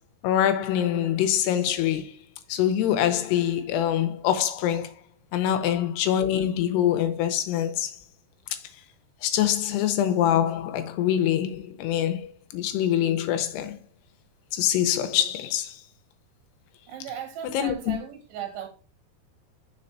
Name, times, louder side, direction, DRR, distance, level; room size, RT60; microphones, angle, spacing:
voice 1, 0.2-2.1 2.5-4.9 5.3-7.9 9.2-13.8 14.5-15.8 17.5-18.0, left 10 dB, 90° left, 2.8 m, -24 dB
voice 2, 16.9-18.7, right 9 dB, 85° right, 3.3 m, -37 dB
6.0 x 4.4 x 3.9 m
omnidirectional pair, 4.7 m